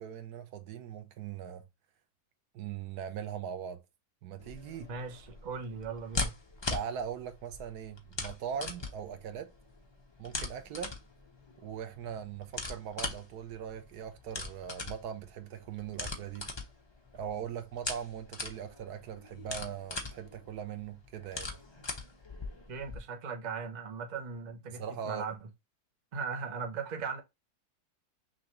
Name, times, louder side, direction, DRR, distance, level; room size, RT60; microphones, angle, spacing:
voice 1, 0.0-1.6 2.5-3.8 4.2-4.9 6.7-9.5 10.2-11.0 11.6-16.5 17.1-21.5 24.7-25.2, right 8 dB, 85° right, 1.2 m, -40 dB
sound 1, 4.4-23.0, left 3 dB, 25° left, 0.6 m, -41 dB
voice 2, 4.9-6.3 22.7-25.4 26.1-27.2, right 5 dB, 40° right, 0.7 m, -38 dB
6.2 x 2.5 x 3.1 m
omnidirectional pair, 1.6 m